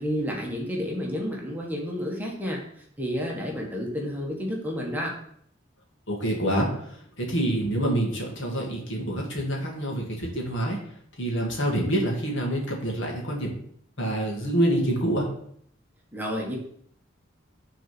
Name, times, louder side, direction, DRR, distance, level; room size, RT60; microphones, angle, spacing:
voice 1, 0.0-5.1 16.1-16.6, equal, 10° right, -2 dB, 1.2 m, -30 dB
voice 2, 6.1-10.8 11.2-13.5 14.0-15.3, right 1 dB, 65° left, -1 dB, 2.0 m, -26 dB
6.3 x 4.0 x 6.0 m, 0.66 s
head